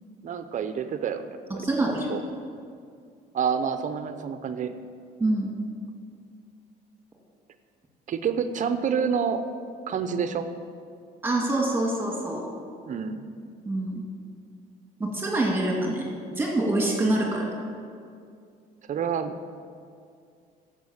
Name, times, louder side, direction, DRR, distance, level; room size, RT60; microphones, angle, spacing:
voice 1, 0.2-2.2 3.3-4.7 8.1-9.4 9.9-10.5 12.8-13.3 18.9-19.5, right 7 dB, 50° right, 9 dB, 0.7 m, -28 dB
voice 2, 1.6-2.1 5.2-5.5 11.2-12.5 13.7-14.0 15.0-16.1 16.4-17.5, right 2 dB, 15° right, -2 dB, 2.3 m, -25 dB
10.5 x 7.6 x 7.3 m, 2.3 s
cardioid pair, 110°, 17 cm